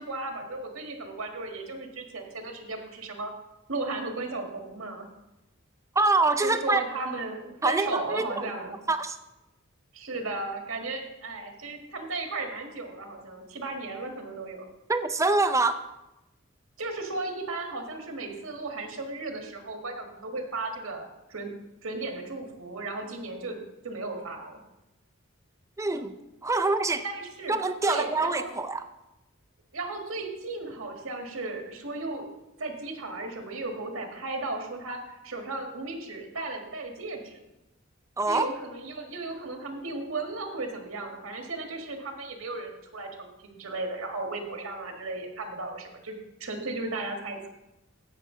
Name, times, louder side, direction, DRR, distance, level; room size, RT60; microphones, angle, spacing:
voice 1, 0.0-3.3 3.7-5.1 6.4-8.8 9.9-14.7 16.8-21.5 21.8-23.6 23.8-24.6 27.0-27.6 27.8-28.5 29.7-32.2 32.6-37.4 38.3-47.5, right 2 dB, 80° right, 3 dB, 1.6 m, -35 dB
voice 2, 6.0-6.8 7.6-8.5 8.9-9.2 14.9-15.8 25.8-26.2 26.4-27.0 27.5-28.8 38.2-38.5, right 3 dB, 15° right, 10 dB, 0.5 m, -25 dB
15.5 x 6.0 x 3.8 m, 0.95 s
head